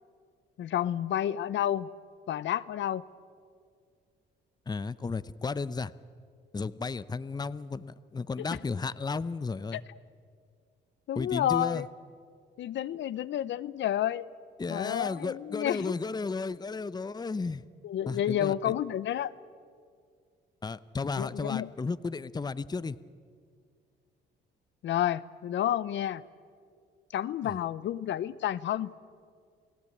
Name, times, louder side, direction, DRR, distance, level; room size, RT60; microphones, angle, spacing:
voice 1, 0.6-1.9 2.3-3.0 9.7-9.8 11.1-11.8 12.6-14.3 14.7-15.9 17.8-19.3 21.2-21.7 24.8-26.2 27.1-28.9, left 11 dB, 70° left, 16 dB, 0.7 m, -30 dB
voice 2, 4.7-5.9 6.5-9.8 11.1-11.9 14.6-17.6 18.1-18.7 20.6-23.0 27.4-27.6, left 4 dB, 20° left, 16 dB, 0.7 m, -34 dB
29.0 x 17.5 x 8.5 m, 2.1 s
cardioid pair, 90°, 20 cm